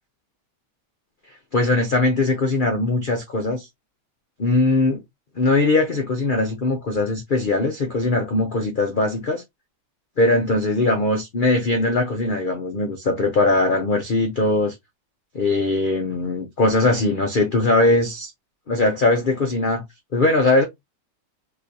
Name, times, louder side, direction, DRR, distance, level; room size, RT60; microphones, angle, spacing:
voice 1, 1.5-3.7 4.4-5.0 5.4-9.4 10.2-14.7 15.3-18.3 18.7-19.8 20.1-20.6, left 2 dB, 70° left, 0.4 m, -20 dB
4.0 x 2.7 x 2.6 m
omnidirectional pair, 1.9 m